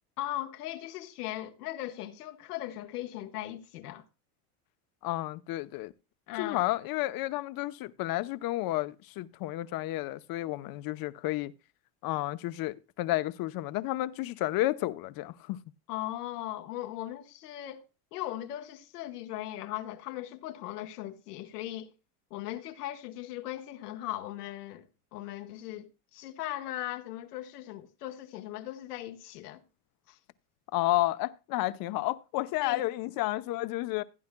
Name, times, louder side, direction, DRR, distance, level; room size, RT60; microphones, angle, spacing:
voice 1, 0.2-4.0 6.3-6.6 15.9-17.8 18.1-21.9 22.3-24.9 25.1-29.6 30.1-30.2 32.6-32.8, left 14 dB, 90° left, 1.3 m, -38 dB
voice 2, 5.0-5.9 6.4-11.5 12.0-15.6 30.7-34.0, left 17 dB, 50° left, 0.8 m, -31 dB
16.0 x 9.5 x 2.2 m
supercardioid pair, 110°, 45 cm